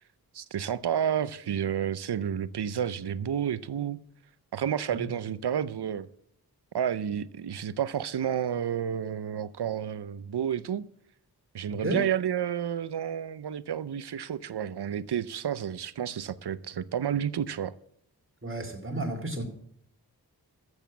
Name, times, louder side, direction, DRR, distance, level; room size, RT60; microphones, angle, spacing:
voice 1, 0.3-4.0 4.5-6.1 6.7-10.9 11.5-17.7, right 9 dB, 85° right, 0.7 m, -30 dB
voice 2, 11.7-12.0 18.4-19.4, right 1 dB, 30° right, 2.9 m, -32 dB
14.0 x 8.2 x 7.3 m
wide cardioid pair, 50°, 39 cm